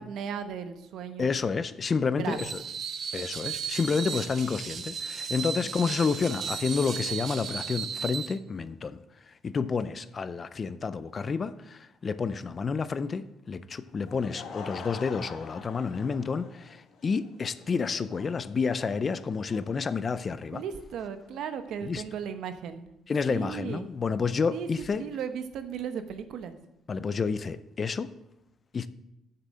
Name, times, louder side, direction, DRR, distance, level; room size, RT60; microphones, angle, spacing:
voice 1, 0.0-1.3 2.2-2.5 20.5-22.9 23.3-23.9 24.5-24.7 25.0-26.6, right 7 dB, 70° right, 9 dB, 1.0 m, -36 dB
voice 2, 1.2-2.6 3.1-9.0 9.3-20.6 21.8-22.0 23.1-25.0 26.9-28.1 28.7-28.9, left 5 dB, 30° left, 14 dB, 0.5 m, -30 dB
Screech, 2.3-8.3, right 7 dB, 45° right, 0.7 m, -35 dB
Laughter / Crowd, 13.9-20.8, left 5 dB, 60° left, 1.4 m, -46 dB
7.6 x 6.8 x 7.5 m, 0.87 s
cardioid pair, 130°, 0 cm